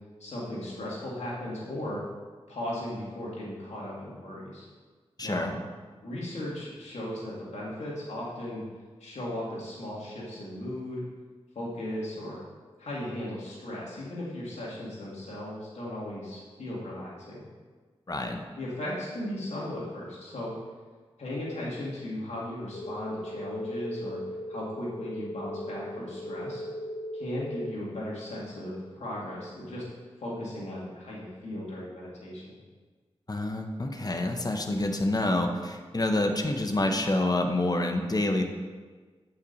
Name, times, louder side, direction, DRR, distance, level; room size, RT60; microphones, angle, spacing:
voice 1, 0.2-2.0 2.5-4.7 5.2-5.5 6.0-8.6 9.0-11.0 11.5-12.4 12.8-17.4 18.6-20.5 21.2-24.2 24.5-26.6 27.1-29.8 30.2-32.6, left 1 dB, 90° left, -6 dB, 2.3 m, -36 dB
voice 2, 5.2-5.6 18.1-18.4 33.3-38.4, left 1 dB, 35° left, 4 dB, 0.9 m, -27 dB
sound 1, 22.7-27.7, equal, 70° left, 0.9 m, -37 dB
8.5 x 5.8 x 4.0 m, 1.4 s
cardioid pair, 50°, 11 cm